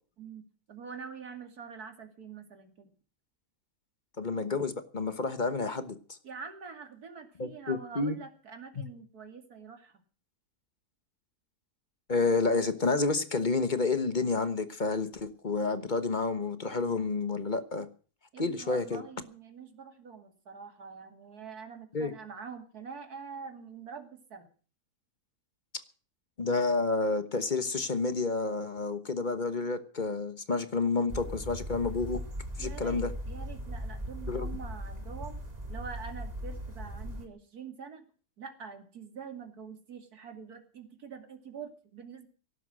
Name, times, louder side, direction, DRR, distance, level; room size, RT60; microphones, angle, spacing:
voice 1, 0.2-2.9 6.2-9.9 18.3-24.5 32.6-35.4 35.7-38.1 38.4-42.3, right 6 dB, 75° right, 6 dB, 3.0 m, -45 dB
voice 2, 4.2-6.2 7.4-8.2 8.8-8.9 12.1-17.9 18.4-19.0 21.9-22.1 26.4-32.2 32.6-33.1 34.3-34.5, left 3 dB, 35° left, 11 dB, 1.3 m, -30 dB
sound 1, 31.1-37.3, equal, 25° right, 2.1 m, -38 dB
17.5 x 12.0 x 6.3 m, 0.40 s
omnidirectional pair, 1.6 m